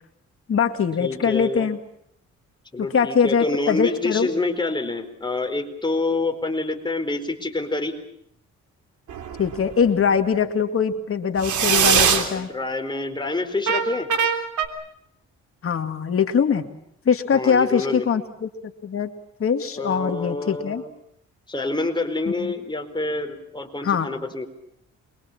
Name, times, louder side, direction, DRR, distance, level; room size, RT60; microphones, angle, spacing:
voice 1, 0.5-1.8 2.8-4.3 9.4-12.5 15.6-16.7 17.1-18.5 18.8-19.1 19.4-20.8 22.3-22.5 23.8-24.1, left 6 dB, 45° left, 6 dB, 2.3 m, -22 dB
voice 2, 1.0-1.7 2.7-7.9 11.8-14.1 17.3-18.1 19.7-20.9 21.5-24.5, left 2 dB, 15° left, 5 dB, 4.4 m, -27 dB
sound 1, 9.1-9.7 11.4-12.3 13.7-14.7, right 7 dB, 75° right, 3.5 m, -21 dB
28.0 x 23.0 x 7.3 m, 0.73 s
cardioid pair, 90°, 30 cm